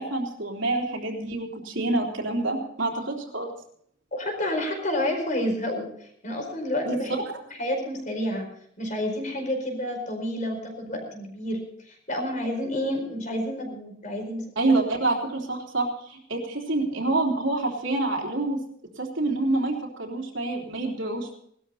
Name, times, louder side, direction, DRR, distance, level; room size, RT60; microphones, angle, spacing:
voice 1, 0.0-3.5 6.9-7.1 14.6-18.6 19.0-21.4, right 2 dB, 75° right, 0 dB, 3.5 m, -27 dB
voice 2, 4.1-5.9 6.2-7.1 7.6-8.5 8.8-11.6 12.1-14.8, left 1 dB, 40° left, 3 dB, 4.8 m, -29 dB
19.0 x 13.0 x 4.2 m, 0.66 s
head